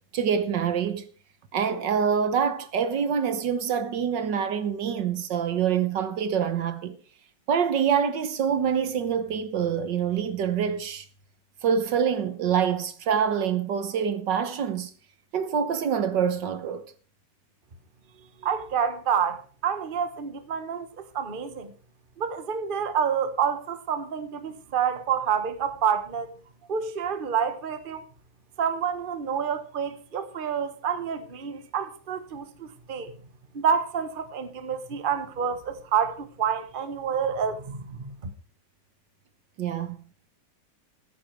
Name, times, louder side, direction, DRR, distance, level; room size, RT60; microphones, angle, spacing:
voice 1, 0.1-1.1 1.5-7.0 7.5-11.1 11.6-14.9 15.3-16.8 39.6-40.0, right 7 dB, 70° right, 1.7 m, -26 dB
voice 2, 18.4-21.7 22.2-26.3 26.7-28.0 28.6-33.2 33.5-38.1, right 7 dB, 30° right, 1.2 m, -28 dB
14.0 x 10.0 x 4.6 m
omnidirectional pair, 2.1 m